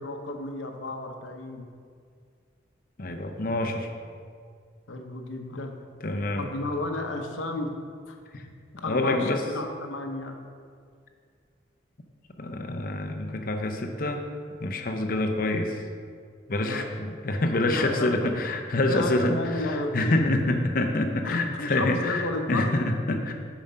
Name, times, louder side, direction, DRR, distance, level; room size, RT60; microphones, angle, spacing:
voice 1, 0.0-1.6 4.9-5.7 6.4-7.7 8.1-8.2 8.8-10.3 16.6-16.9 17.6-18.2 18.9-20.3 21.2-22.8, left 2 dB, 85° left, 4 dB, 0.8 m, -32 dB
voice 2, 3.0-3.9 6.0-6.5 8.8-9.4 12.4-14.2 14.6-15.8 16.5-23.3, left 2 dB, 45° left, 4 dB, 0.6 m, -26 dB
7.3 x 4.9 x 5.5 m, 2.1 s
head